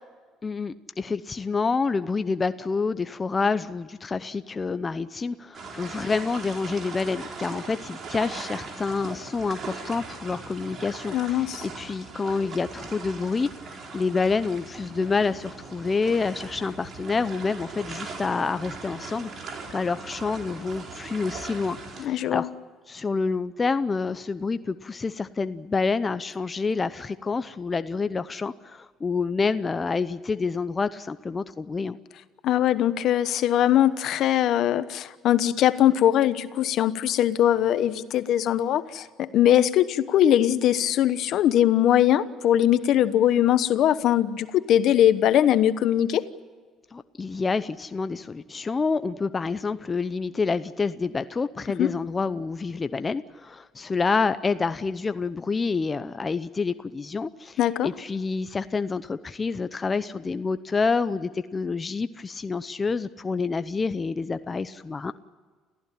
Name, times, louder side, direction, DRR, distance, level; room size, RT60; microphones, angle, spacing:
voice 1, 0.4-22.5 22.9-32.0 46.9-65.1, left 4 dB, 25° left, 12 dB, 0.7 m, -28 dB
sound 1, 5.5-22.0, right 4 dB, 50° right, 4.6 m, -40 dB
voice 2, 11.1-11.7 22.0-22.5 32.4-46.2 51.8-51.9 57.6-57.9, left 11 dB, 65° left, 13 dB, 1.1 m, -21 dB
29.0 x 15.0 x 9.9 m, 1.5 s
cardioid pair, 105°, 0 cm